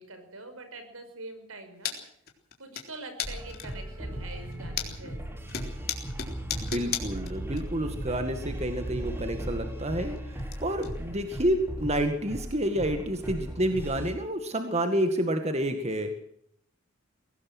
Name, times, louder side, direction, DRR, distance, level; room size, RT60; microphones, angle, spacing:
voice 1, 0.0-1.9 2.6-5.4, right 2 dB, 75° right, 8 dB, 5.8 m, -44 dB
sound 1, 1.8-2.0 2.3-2.8 3.2-3.8 4.3-5.1 5.5-7.6 7.9-8.0 9.2-9.3 9.6-10.5 10.8-10.9 11.3-11.4 11.9-12.0 12.5-12.6 13.8-13.9, left 8 dB, 45° left, 3.8 m, -34 dB
sound 2, 3.2-14.1, equal, 10° right, 3.5 m, -38 dB
sound 3, 3.4-9.6, right 2 dB, 50° right, 0.9 m, -42 dB
voice 2, 6.6-16.2, right 1 dB, 30° right, 7 dB, 2.1 m, -29 dB
23.0 x 18.0 x 6.2 m, 0.67 s
head